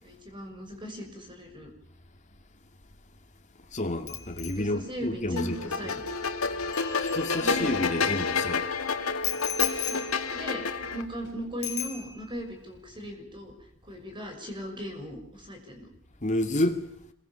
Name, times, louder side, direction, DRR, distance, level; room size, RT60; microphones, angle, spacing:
voice 1, 0.0-1.7 4.6-6.0 7.4-7.7 9.8-10.1 10.3-10.6 10.9-13.5 13.8-15.9, equal, 25° right, 6.3 m, -38 dB
voice 2, 3.7-5.9 7.0-8.7 16.2-16.9, left 1 dB, 35° left, 2.6 m, -30 dB
Bicycle bell, 4.1-7.9 9.2-11.3 11.6-12.5 12.8-13.1, left 11 dB, 55° left, 3.6 m, -37 dB
sound 1, 5.4-11.0, left 4 dB, 75° left, 2.0 m, -29 dB
26.5 x 23.0 x 7.2 m
head